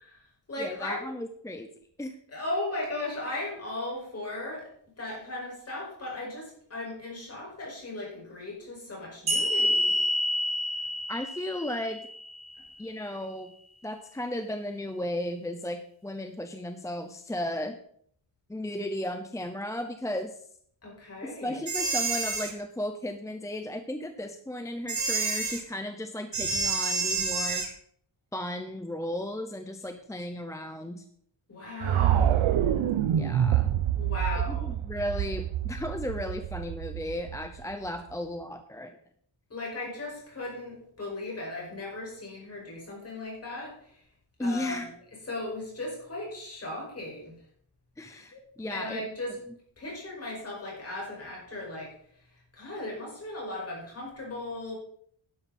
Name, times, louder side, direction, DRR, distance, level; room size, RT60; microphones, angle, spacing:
voice 1, 0.0-1.1 2.3-4.7 5.0-10.0 12.6-12.7 20.8-21.6 31.5-32.5 34.0-34.7 39.5-44.0 44.4-44.9 45.3-47.3 48.3-48.4 48.7-49.4 49.8-51.9 52.5-54.7, left 2 dB, 30° left, -2 dB, 5.5 m, -37 dB
voice 2, 0.6-1.7 2.0-2.2 11.1-12.1 12.8-13.5 13.8-17.8 18.5-20.4 21.2-27.7 28.3-31.0 33.1-33.7 34.5-39.0 44.4-44.9 48.0-49.0, left 1 dB, 5° left, 7 dB, 0.5 m, -35 dB
sound 1, 9.3-12.6, equal, 55° right, 5.1 m, -28 dB
sound 2, 21.7-22.5 24.9-25.6 26.3-27.7, right 4 dB, 35° right, 1.9 m, -29 dB
sound 3, 31.8-37.9, right 10 dB, 85° right, 0.8 m, -27 dB
11.5 x 11.0 x 4.2 m, 0.64 s
wide cardioid pair, 175°, 46 cm